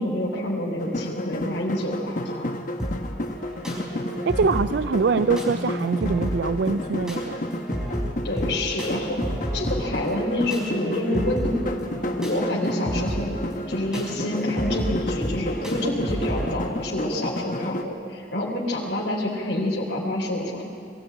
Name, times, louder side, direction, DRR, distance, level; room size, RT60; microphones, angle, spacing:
voice 1, 0.0-2.6 8.2-11.6 12.2-13.4 13.7-20.6, left 1 dB, 70° left, -4 dB, 3.6 m, -27 dB
sound 1, 0.8-17.8, left 1 dB, 45° left, 1.1 m, -31 dB
sound 2, 2.8-16.5, equal, 5° right, 4.9 m, -32 dB
voice 2, 4.3-7.4, right 4 dB, 70° right, 13 dB, 0.4 m, -24 dB
22.0 x 14.5 x 8.8 m, 2.4 s
head